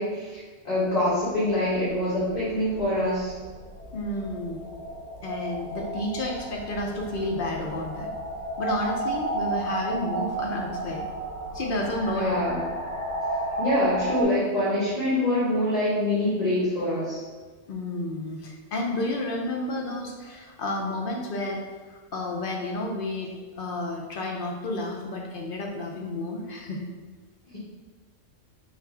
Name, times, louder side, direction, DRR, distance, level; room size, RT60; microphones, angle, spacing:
voice 1, 0.0-3.3 12.1-12.6 13.6-17.2 27.5-27.6, left 1 dB, 35° left, -9 dB, 1.0 m, -25 dB
sound 1, 1.2-14.2, right 2 dB, 30° right, 0.9 m, -33 dB
voice 2, 3.9-4.6 5.2-8.1 8.6-11.0 11.5-12.4 17.7-21.6 21.9-26.8, left 1 dB, 60° left, 0 dB, 0.6 m, -31 dB
3.5 x 2.4 x 4.5 m, 1.4 s
omnidirectional pair, 1.3 m